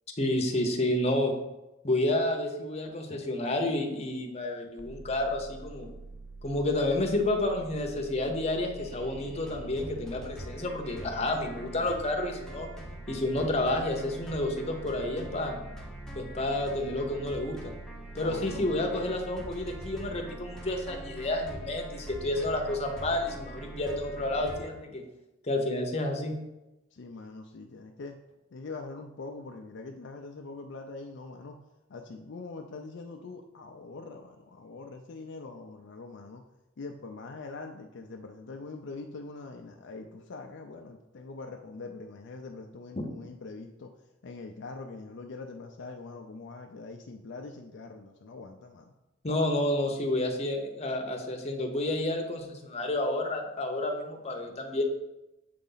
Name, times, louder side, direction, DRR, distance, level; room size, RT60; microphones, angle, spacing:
voice 1, 0.2-1.3 1.8-5.9 6.4-12.7 13.1-15.6 16.2-17.7 18.1-25.0 25.4-26.4 43.0-43.1 49.2-54.8, left 1 dB, 35° left, 2 dB, 0.9 m, -30 dB
sound 1, 4.8-24.5, right 3 dB, 50° right, 0.5 m, -46 dB
sound 2, 8.7-24.7, equal, 5° left, 0.9 m, -46 dB
voice 2, 18.1-19.2 24.4-24.5 26.9-28.1 28.5-31.6 31.9-36.4 36.8-43.9 44.2-48.9, left 3 dB, 65° left, 3 dB, 0.5 m, -43 dB
7.6 x 4.0 x 3.9 m, 0.97 s
head